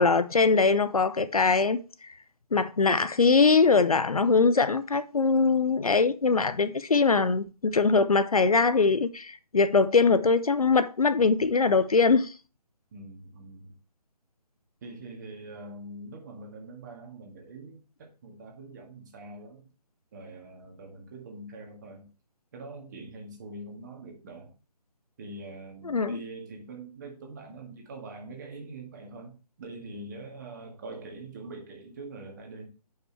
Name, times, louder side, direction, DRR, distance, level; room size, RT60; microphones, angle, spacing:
voice 1, 0.0-2.1 2.5-12.3 25.9-26.2, left 4 dB, 60° left, 0.7 m, -22 dB
voice 2, 12.9-13.8 14.8-19.7 20.1-22.1 22.5-24.5 25.2-32.7, right 2 dB, 25° right, 1.9 m, -43 dB
10.5 x 5.6 x 3.3 m
figure-of-eight pair, 145°, 21 cm